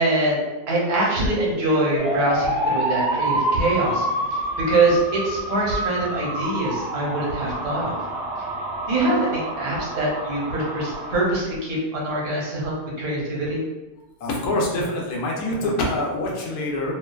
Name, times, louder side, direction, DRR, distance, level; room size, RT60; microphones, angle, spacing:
voice 1, 0.0-4.4 4.7-8.0 8.9-13.6, right 2 dB, 75° right, -4 dB, 1.3 m, -24 dB
sound 1, 2.0-11.2, right 1 dB, 60° right, 0.9 m, -27 dB
voice 2, 14.2-16.9, left 1 dB, 75° left, -2 dB, 1.1 m, -25 dB
2.9 x 2.2 x 2.2 m, 1.1 s
omnidirectional pair, 1.6 m